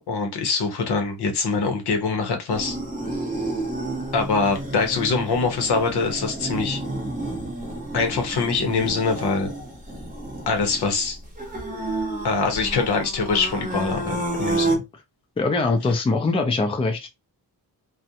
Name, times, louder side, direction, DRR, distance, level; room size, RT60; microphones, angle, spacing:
voice 1, 0.1-2.8 4.1-6.8 7.9-9.5 10.5-11.2 12.2-14.8, left 4 dB, 85° left, 0.9 m, -23 dB
sound 1, 2.5-14.8, right 2 dB, 20° right, 0.8 m, -30 dB
voice 2, 15.4-17.1, left 3 dB, 15° left, 0.4 m, -22 dB
2.4 x 2.2 x 2.7 m
wide cardioid pair, 155°, 38 cm